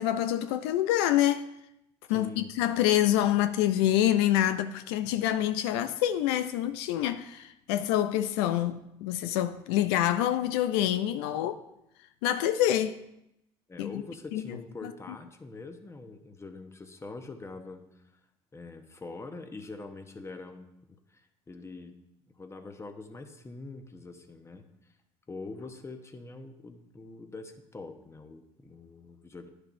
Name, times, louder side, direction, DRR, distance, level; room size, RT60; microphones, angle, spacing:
voice 1, 0.0-1.5 2.1-11.6 12.2-13.0 13.8-13.9 14.3-14.6 14.8-14.9, left 12 dB, 90° left, 0.4 m, -26 dB
voice 2, 2.1-2.5 13.7-18.0 18.5-21.9 22.4-24.6 25.3-29.5, left 3 dB, 20° left, 0.9 m, -44 dB
10.5 x 6.6 x 2.6 m
supercardioid pair, 80°, 13 cm